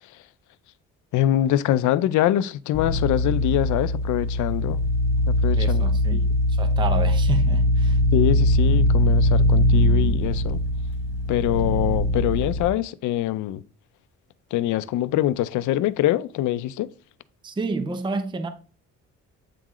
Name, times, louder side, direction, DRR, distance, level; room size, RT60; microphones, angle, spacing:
voice 1, 1.1-4.8 5.3-6.4 8.1-10.6 11.3-13.6 14.5-16.9, left 13 dB, 75° left, 0.5 m, -24 dB
sound 1, 2.7-12.7, left 1 dB, 35° left, 1.1 m, -21 dB
voice 2, 5.5-6.2 6.5-8.0 17.4-18.5, right 3 dB, 15° right, 0.5 m, -29 dB
8.4 x 3.7 x 3.0 m
cardioid pair, 90°, 30 cm